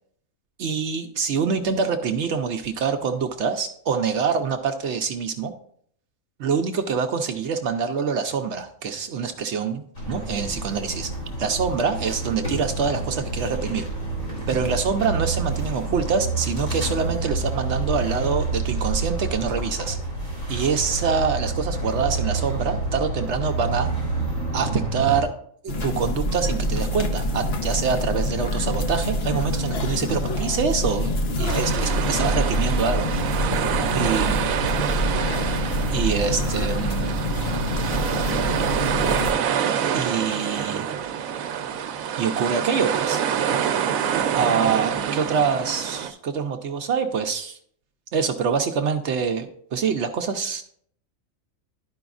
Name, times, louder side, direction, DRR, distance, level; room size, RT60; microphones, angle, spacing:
voice 1, 0.6-5.5 6.4-11.1 11.4-13.9 14.5-20.0 20.5-23.9 24.5-25.3 25.6-33.1 33.9-34.4 35.9-37.2 39.9-40.9 42.2-43.2 44.3-47.6 48.1-50.6, right 6 dB, 65° right, 6 dB, 0.8 m, -25 dB
sound 1, 9.9-25.2, right 3 dB, 80° left, 3.8 m, -28 dB
sound 2, 25.7-39.3, equal, 55° left, 1.0 m, -25 dB
sound 3, 31.5-46.1, right 8 dB, 90° right, 1.0 m, -26 dB
12.0 x 5.0 x 2.4 m, 0.64 s
omnidirectional pair, 1.4 m